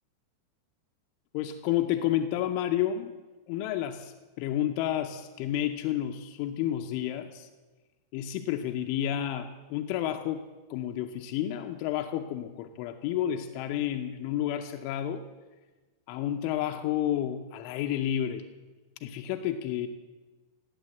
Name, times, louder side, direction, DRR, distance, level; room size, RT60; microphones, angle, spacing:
voice 1, 1.3-3.2 3.5-7.5 8.1-15.3 16.1-18.4 19.0-19.9, left 11 dB, 85° left, 6 dB, 3.2 m, -30 dB
18.0 x 9.1 x 7.9 m, 1.2 s
omnidirectional pair, 5.4 m